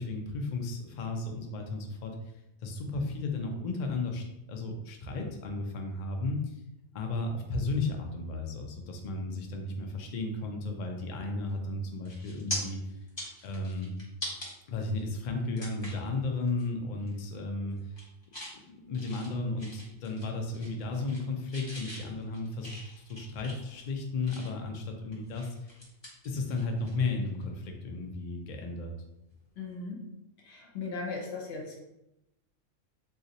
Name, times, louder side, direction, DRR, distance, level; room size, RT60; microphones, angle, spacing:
voice 1, 0.0-2.1 2.6-6.6 6.9-13.0 13.4-13.9 14.7-17.9 18.9-25.7 26.2-28.9, left 3 dB, 85° left, 3 dB, 0.4 m, -34 dB
sound 1, 11.5-11.7 12.1-12.6 13.0-14.5 15.0-15.1 15.6-16.1 16.5-16.7 17.0-17.4 17.8-18.6 18.9-20.3 20.5-21.3 21.5-24.7 25.1-26.9 27.2-27.4 29.3-29.5, left 1 dB, 25° left, 0.7 m, -42 dB
voice 2, 29.6-30.0 30.4-31.8, left 4 dB, 55° left, -1 dB, 0.9 m, -37 dB
2.5 x 2.4 x 3.9 m, 0.89 s
omnidirectional pair, 1.3 m